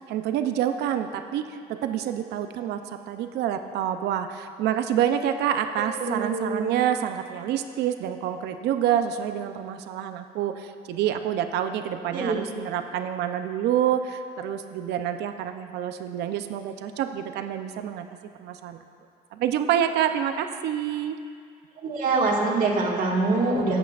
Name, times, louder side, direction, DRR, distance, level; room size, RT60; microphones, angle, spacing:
voice 1, 0.1-18.1 18.4-18.8 19.3-21.2, right 10 dB, 80° right, 8 dB, 0.6 m, -27 dB
voice 2, 6.0-6.8 12.1-12.4 21.8-23.8, right 3 dB, 55° right, -2 dB, 2.0 m, -24 dB
16.5 x 8.3 x 2.5 m, 2.2 s
cardioid pair, 110°, 17 cm